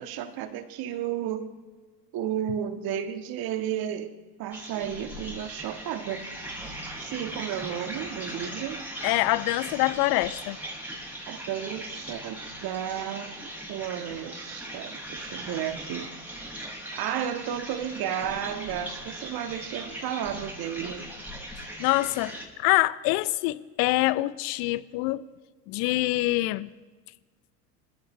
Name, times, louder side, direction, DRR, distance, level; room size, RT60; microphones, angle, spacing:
voice 1, 0.0-1.5 2.1-4.1 4.4-6.3 6.6-8.8 11.3-13.3 13.7-16.1 16.9-21.1, right 10 dB, 50° right, 1.8 m, -33 dB
sound 1, 4.5-22.4, right 1 dB, 5° right, 5.9 m, -39 dB
voice 2, 9.0-10.6 21.8-25.2 25.7-26.7, left 19 dB, 50° left, 0.8 m, -25 dB
27.0 x 15.0 x 3.3 m
hypercardioid pair, 80°, 48 cm